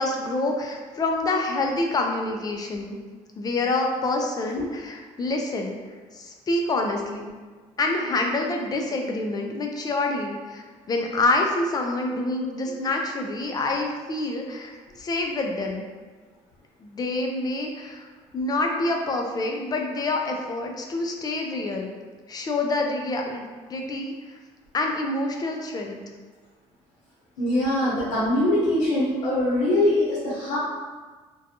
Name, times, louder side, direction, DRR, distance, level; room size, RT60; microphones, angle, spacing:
voice 1, 0.0-3.0 3.4-5.8 6.1-7.3 7.8-15.9 16.8-18.1 18.3-21.9 22.3-24.4 24.7-26.0, left 2 dB, 30° left, 2 dB, 0.4 m, -27 dB
voice 2, 27.4-30.6, left 1 dB, 90° left, -7 dB, 0.8 m, -22 dB
2.5 x 2.2 x 2.7 m, 1.4 s
cardioid pair, 100°, 12 cm